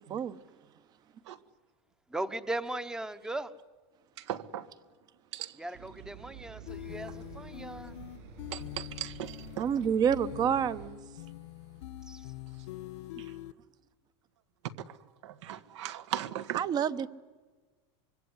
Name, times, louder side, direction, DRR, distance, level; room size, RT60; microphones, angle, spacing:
voice 1, 2.1-3.5 5.6-8.0 12.1-12.3, right 2 dB, 5° right, 0.9 m, -38 dB
voice 2, 4.2-4.7 5.3-5.6 8.5-9.7 14.9-15.0 15.2-16.6, right 12 dB, 75° right, 1.7 m, -38 dB
sound 1, 5.7-10.9, right 8 dB, 55° right, 6.6 m, -49 dB
sound 2, 6.7-13.5, left 13 dB, 75° left, 1.2 m, -44 dB
voice 3, 9.6-11.0 16.5-17.1, right 8 dB, 25° right, 0.9 m, -28 dB
25.0 x 24.0 x 9.7 m
supercardioid pair, 155°, 15 cm